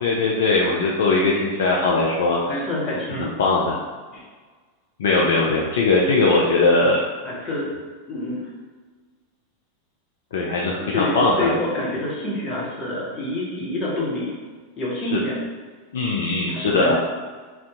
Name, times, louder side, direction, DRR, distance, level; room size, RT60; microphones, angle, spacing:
voice 1, 0.0-2.7 3.1-3.8 5.0-7.0 10.3-11.6 15.0-15.2 15.9-17.0, left 3 dB, 60° left, -3 dB, 0.3 m, -20 dB
voice 2, 2.5-3.3 4.1-4.2 7.2-7.7 8.1-8.5 10.6-14.3 14.8-15.4 16.5-17.0, left 1 dB, 30° left, -5 dB, 1.0 m, -27 dB
2.6 x 2.2 x 3.6 m, 1.4 s
figure-of-eight pair, 85°, 0 cm